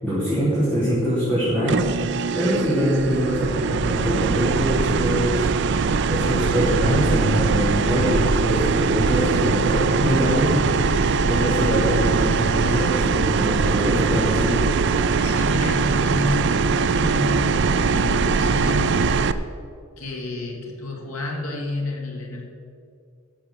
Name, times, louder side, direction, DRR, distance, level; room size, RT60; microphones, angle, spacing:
voice 1, 0.0-1.8 2.4-5.5 6.1-10.5 11.3-14.6, equal, 5° left, -11 dB, 3.2 m, -23 dB
sound 1, 1.7-19.3, right 4 dB, 55° right, 0.4 m, -21 dB
voice 2, 15.2-19.4 20.0-22.5, left 2 dB, 85° left, 0 dB, 2.3 m, -30 dB
13.0 x 6.7 x 7.1 m, 2.4 s
head